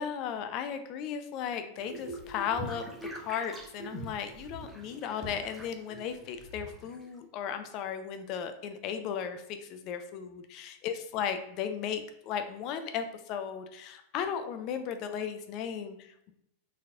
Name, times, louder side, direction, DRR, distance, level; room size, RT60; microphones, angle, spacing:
voice 1, 0.0-2.9 3.1-16.3, left 8 dB, 40° left, 8 dB, 0.4 m, -36 dB
sound 1, 1.8-7.2, equal, 5° right, 1.2 m, -43 dB
4.1 x 4.0 x 2.3 m, 0.80 s
figure-of-eight pair, 90°, 0 cm